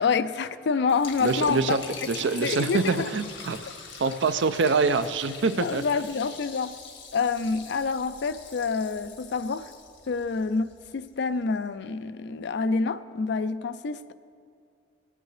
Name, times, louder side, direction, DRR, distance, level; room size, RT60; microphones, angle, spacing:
voice 1, 0.0-1.8 2.4-3.1 5.6-6.7 7.1-9.7 10.1-14.1, left 5 dB, 65° left, 13 dB, 0.4 m, -27 dB
Liquid, 0.9-11.1, left 5 dB, 85° left, 1.6 m, -43 dB
voice 2, 1.2-1.8 2.1-3.6 4.0-5.8, right 4 dB, 70° right, 12 dB, 0.5 m, -25 dB
18.0 x 8.9 x 3.3 m, 2.3 s
head